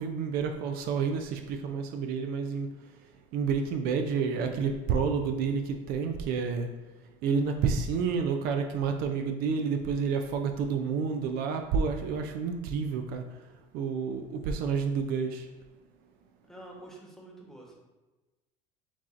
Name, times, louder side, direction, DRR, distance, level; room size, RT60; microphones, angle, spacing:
voice 1, 0.0-2.7 3.3-6.7 7.2-13.2 13.7-15.5, right 5 dB, 65° right, 5 dB, 0.4 m, -29 dB
voice 2, 16.5-17.7, right 1 dB, ahead, -2 dB, 1.1 m, -47 dB
7.0 x 2.5 x 2.5 m, 1.2 s
supercardioid pair, 105°, 17 cm